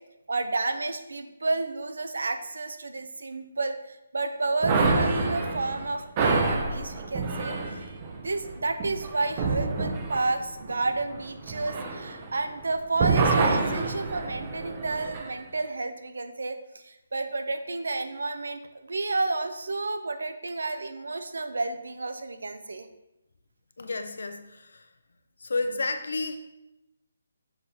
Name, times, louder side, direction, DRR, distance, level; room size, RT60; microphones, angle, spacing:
voice 1, 0.3-7.6 8.1-22.9, right 3 dB, 85° right, 9 dB, 0.6 m, -31 dB
sound 1, 4.6-12.6 12.9-15.3, right 3 dB, 20° right, 0.6 m, -27 dB
voice 2, 23.8-24.9 25.4-26.4, left 3 dB, 75° left, 7 dB, 0.7 m, -31 dB
6.8 x 4.1 x 4.3 m, 0.90 s
hypercardioid pair, 175°, 0 cm